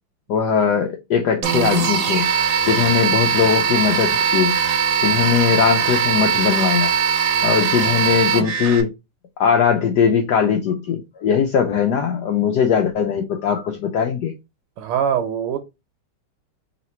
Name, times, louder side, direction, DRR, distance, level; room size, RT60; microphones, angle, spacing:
voice 1, 0.3-2.3 2.7-4.6 5.0-6.9 7.4-8.9 9.4-14.3, left 7 dB, 85° left, 0.9 m, -20 dB
sound 1, 1.4-8.8, right 7 dB, 65° right, 1.3 m, -20 dB
voice 2, 14.8-15.6, right 8 dB, 85° right, 1.6 m, -22 dB
3.2 x 3.0 x 4.2 m
omnidirectional pair, 2.4 m